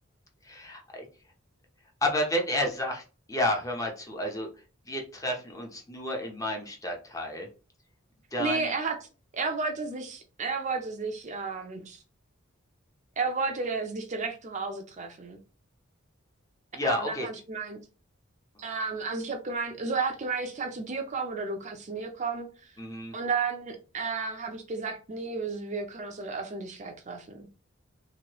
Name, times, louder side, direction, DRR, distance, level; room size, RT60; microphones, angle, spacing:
voice 1, 0.4-1.1 2.0-3.0 3.3-4.5 4.9-7.5 8.3-8.7 16.7-17.3 22.8-23.2, left 1 dB, 15° left, 0.6 m, -30 dB
voice 2, 8.4-9.0 9.3-12.0 13.2-15.4 16.8-17.8 18.6-22.5 23.1-27.5, right 4 dB, 35° right, 0.5 m, -32 dB
3.0 x 2.6 x 2.9 m
head